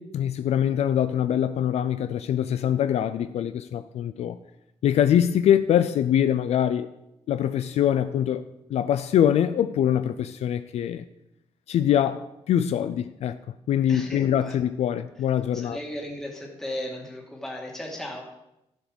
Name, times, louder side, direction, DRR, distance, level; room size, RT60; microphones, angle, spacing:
voice 1, 0.0-4.4 4.8-6.9 7.3-8.4 8.7-11.0 11.7-13.4 13.7-15.8, left 10 dB, 65° left, 0.4 m, -23 dB
voice 2, 13.9-14.6 15.5-18.2, left 1 dB, 5° left, 1.9 m, -36 dB
15.0 x 5.1 x 5.2 m
wide cardioid pair, 180°, 12 cm